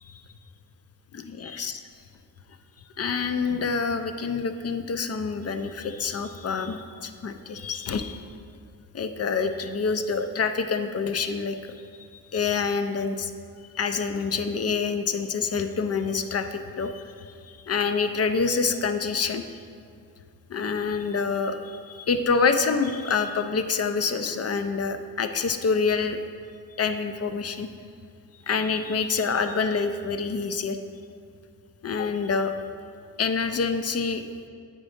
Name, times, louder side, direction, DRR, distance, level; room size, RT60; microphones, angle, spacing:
voice 1, 1.1-1.8 3.0-8.2 8.9-11.7 12.3-13.3 13.7-19.4 20.5-26.2 26.8-27.7 28.5-30.8 31.8-32.5 33.2-34.2, left 5 dB, 40° left, 9 dB, 0.4 m, -27 dB
8.4 x 5.0 x 5.0 m, 2.3 s
wide cardioid pair, 165°, 39 cm